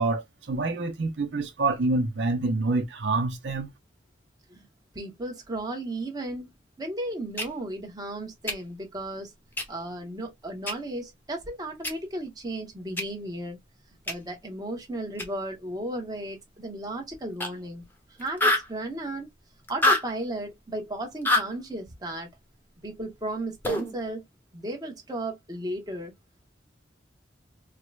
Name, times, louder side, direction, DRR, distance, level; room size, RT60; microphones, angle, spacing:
voice 1, 0.0-3.7, right 3 dB, 65° right, 0.7 m, -27 dB
voice 2, 4.9-6.5 6.8-9.3 9.7-13.6 14.1-17.9 18.2-19.3 19.7-22.3 22.8-24.2 24.5-26.1, right 1 dB, 20° right, 1.0 m, -34 dB
sound 1, 7.4-7.5 8.5-8.6 9.6-9.7 10.7-10.8 11.8-11.9 13.0-13.1 14.1-14.2 15.2-15.3 17.4-17.5 17.8-17.9 18.2-18.7 19.7-20.1 21.2-21.5 23.6-23.9, left 2 dB, 10° left, 0.9 m, -24 dB
4.7 x 2.2 x 2.3 m
head